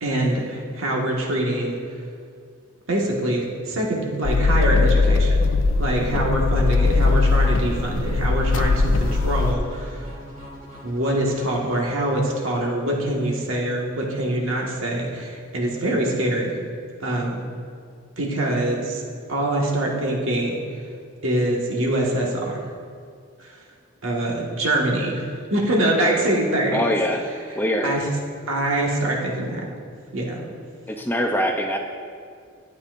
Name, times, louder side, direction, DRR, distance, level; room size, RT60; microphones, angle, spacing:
voice 1, 0.0-1.8 2.9-5.5 5.8-10.0 10.8-16.5 17.0-17.4 18.2-19.0 19.3-20.6 21.2-22.5 24.0-26.9 27.8-28.0 28.5-29.6 30.1-30.4, right 1 dB, 75° right, -2 dB, 1.6 m, -24 dB
sound 1, 4.2-9.5, left 3 dB, 70° left, 0.5 m, -20 dB
sound 2, 6.5-12.5, equal, 45° right, 2.1 m, -42 dB
voice 2, 26.7-27.3 27.6-28.0 30.9-31.8, equal, 10° left, 3 dB, 0.5 m, -23 dB
12.0 x 8.5 x 2.5 m, 2.2 s
head